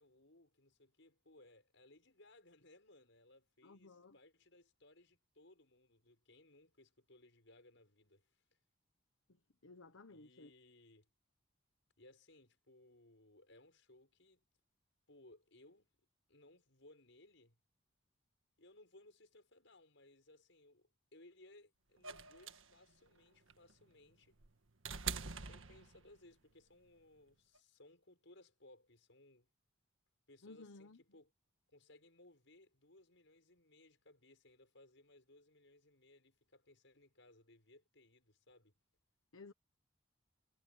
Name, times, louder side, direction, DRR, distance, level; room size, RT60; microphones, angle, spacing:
voice 1, 0.0-8.4 10.1-11.1 12.0-14.5 15.1-15.9 16.3-17.6 18.6-24.4 25.3-29.5 30.3-31.3 31.7-38.8, left 2 dB, 65° left, 7.0 m, -64 dB
voice 2, 3.6-4.2 9.3-10.5 30.4-31.0 39.3-39.5, left 3 dB, 85° left, 1.3 m, -57 dB
sound 1, 22.0-26.3 27.5-27.6, right 6 dB, 80° right, 1.7 m, -45 dB
head